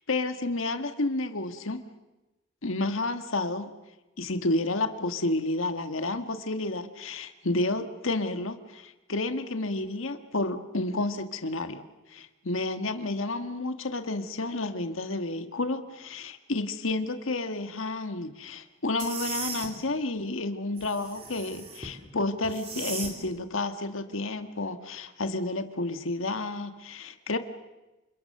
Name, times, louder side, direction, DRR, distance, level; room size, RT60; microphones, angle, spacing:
voice 1, 0.1-1.8 2.6-3.7 4.2-11.8 12.1-27.4, left 2 dB, 75° left, 8 dB, 1.6 m, -30 dB
sound 1, 19.0-19.7 20.8-21.9 22.4-23.2, right 5 dB, 30° right, 3.4 m, -37 dB
29.0 x 26.5 x 6.7 m, 1.1 s
head